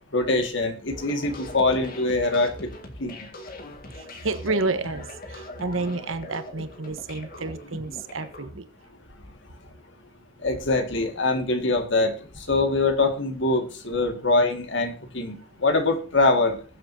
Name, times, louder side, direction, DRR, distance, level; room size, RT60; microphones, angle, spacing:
voice 1, 0.1-2.7 3.0-3.3 10.4-16.6, left 2 dB, 65° left, 6 dB, 2.1 m, -23 dB
sound 1, 0.9-8.5, left 1 dB, 45° left, 2.1 m, -41 dB
voice 2, 4.2-5.1 5.3-8.6, right 3 dB, 80° right, 10 dB, 1.3 m, -29 dB
21.0 x 7.8 x 2.8 m, 0.38 s
head